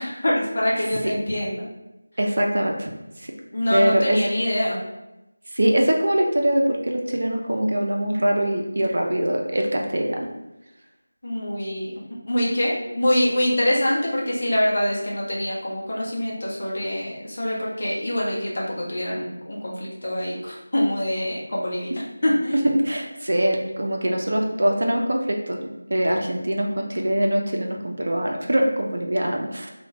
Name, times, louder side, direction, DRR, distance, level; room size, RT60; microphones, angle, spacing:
voice 1, 0.0-1.7 3.5-4.8 11.2-11.9 12.2-21.9 22.2-22.7, left 1 dB, 45° left, -4 dB, 0.7 m, -25 dB
voice 2, 2.2-2.9 3.2-3.3 3.7-4.2 5.5-10.2 22.7-25.6 25.9-29.7, right 1 dB, 55° right, 1 dB, 0.4 m, -23 dB
2.3 x 2.1 x 3.2 m, 0.96 s
figure-of-eight pair, 170°, 0 cm